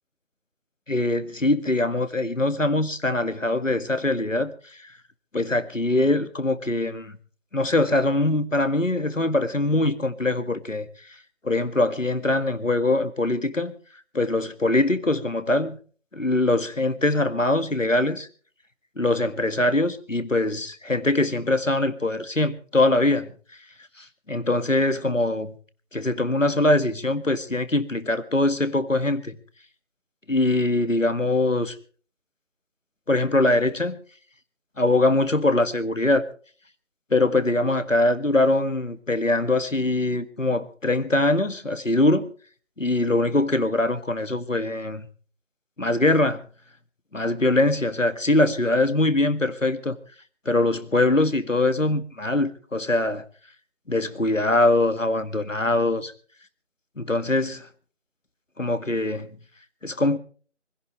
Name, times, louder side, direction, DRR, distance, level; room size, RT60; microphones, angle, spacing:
voice 1, 0.9-4.5 5.3-7.1 7.5-10.9 11.4-13.7 14.1-15.8 16.1-18.3 19.0-23.3 24.0-25.5 25.9-29.3 30.3-31.8 33.1-34.0 34.8-36.2 37.1-42.3 42.8-45.1 45.8-46.4 47.1-50.0 50.5-53.2 53.9-56.1 57.0-57.6 58.6-59.3 59.8-60.2, left 2 dB, 85° left, 1.9 m, -22 dB
25.0 x 17.0 x 3.2 m
figure-of-eight pair, 175°, 38 cm